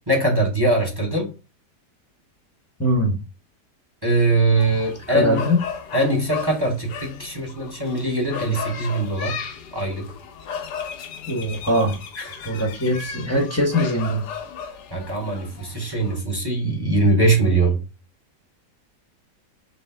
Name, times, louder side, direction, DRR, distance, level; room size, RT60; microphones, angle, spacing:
voice 1, 0.1-1.3 4.0-5.4 5.9-9.4 9.7-10.1 12.2-12.3 14.9-17.8, right 2 dB, 15° right, 1.1 m, -21 dB
voice 2, 2.8-3.2 5.1-5.6 11.3-12.0 12.4-14.2, equal, 10° left, 0.9 m, -21 dB
sound 1, 4.6-16.2, left 6 dB, 80° left, 1.5 m, -35 dB
4.2 x 3.3 x 3.5 m
omnidirectional pair, 1.8 m